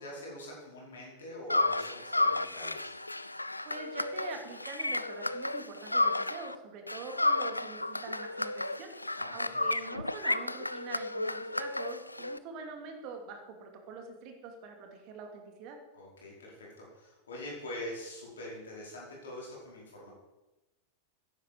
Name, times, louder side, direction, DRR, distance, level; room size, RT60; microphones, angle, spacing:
voice 1, 0.0-2.9 9.1-9.6 15.9-20.1, left 1 dB, 65° left, -3 dB, 5.0 m, -44 dB
sound 1, 1.5-6.6 6.9-12.4, left 2 dB, 85° left, 0.4 m, -32 dB
voice 2, 3.6-15.8, right 4 dB, 40° right, 4 dB, 2.5 m, -45 dB
13.5 x 11.0 x 4.7 m, 1.1 s
figure-of-eight pair, 90°, 0 cm